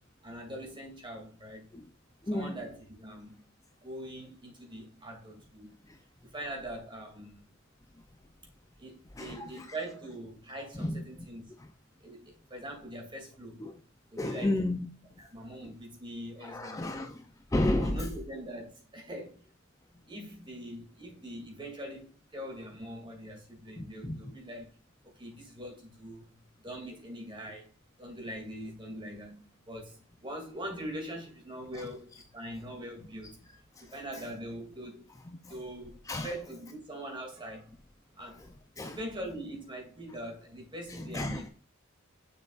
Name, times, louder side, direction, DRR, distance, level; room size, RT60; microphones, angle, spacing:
voice 1, 0.2-1.7 2.3-3.4 3.8-5.8 6.2-7.4 8.8-11.5 12.0-13.7 14.1-14.6 15.2-17.1 17.8-19.4 20.1-24.7 25.0-27.7 28.0-33.4 33.8-35.1 35.5-37.8 38.2-38.4 38.9-41.5, right 1 dB, 25° right, 2.4 m, -42 dB
voice 2, 2.2-2.6 5.9-6.0 9.1-9.7 10.7-11.3 11.6-11.7 13.6-13.8 14.2-14.9 16.4-18.1 23.8-24.2 31.7-31.9 33.8-34.2 35.4-35.5 36.1-36.3 38.4-39.0 40.9-41.5, left 1 dB, 15° left, 0.5 m, -33 dB
6.7 x 6.6 x 2.4 m
head